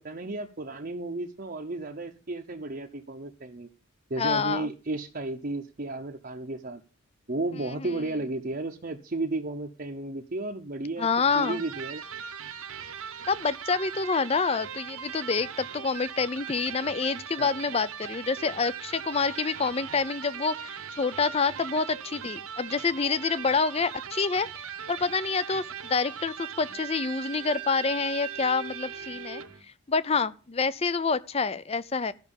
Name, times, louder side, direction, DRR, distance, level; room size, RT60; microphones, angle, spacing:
voice 1, 0.0-3.7 4.1-6.8 7.3-12.1 17.4-17.5, right 2 dB, 45° right, 0.8 m, -33 dB
voice 2, 4.2-4.7 7.7-7.9 11.0-11.6 13.3-29.4 29.9-32.1, left 4 dB, 30° left, 0.5 m, -27 dB
Electric guitar, 11.2-29.6, right 8 dB, 85° right, 1.1 m, -39 dB
13.5 x 6.0 x 7.0 m
head